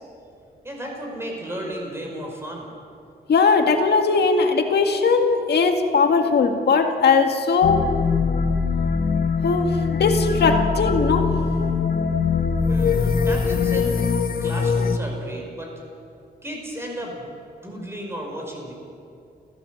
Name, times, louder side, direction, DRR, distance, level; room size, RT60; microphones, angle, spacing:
voice 1, 0.6-2.7 12.7-14.1 14.4-15.7 16.4-17.3 17.6-18.7, equal, 15° right, 0 dB, 5.4 m, -33 dB
voice 2, 3.3-7.9 9.4-11.3, left 4 dB, 75° left, 5 dB, 1.9 m, -19 dB
sound 1, 7.6-15.0, left 5 dB, 60° left, 1.2 m, -22 dB
29.0 x 15.0 x 7.8 m, 2.5 s
wide cardioid pair, 155°, 17 cm